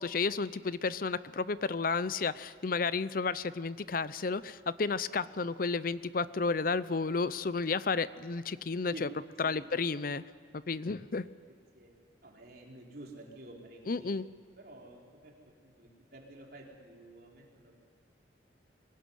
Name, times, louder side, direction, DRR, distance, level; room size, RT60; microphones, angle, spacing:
voice 1, 0.0-9.1 9.4-10.2 10.5-11.3 13.9-14.3, left 4 dB, 50° left, 17 dB, 0.6 m, -32 dB
voice 2, 9.4-9.7 11.7-11.9 12.2-14.2 14.6-17.8, right 1 dB, 55° right, -1 dB, 3.9 m, -51 dB
23.0 x 16.5 x 9.4 m, 2.1 s
head